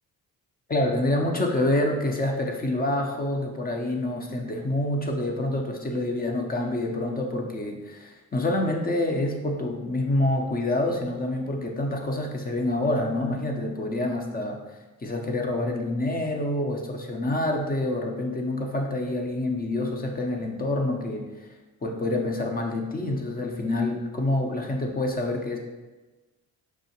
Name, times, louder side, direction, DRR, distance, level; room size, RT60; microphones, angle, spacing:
voice 1, 0.7-21.4 21.8-25.6, left 1 dB, 25° left, 2 dB, 0.6 m, -27 dB
4.7 x 2.5 x 2.8 m, 1.2 s
supercardioid pair, 65°, 39 cm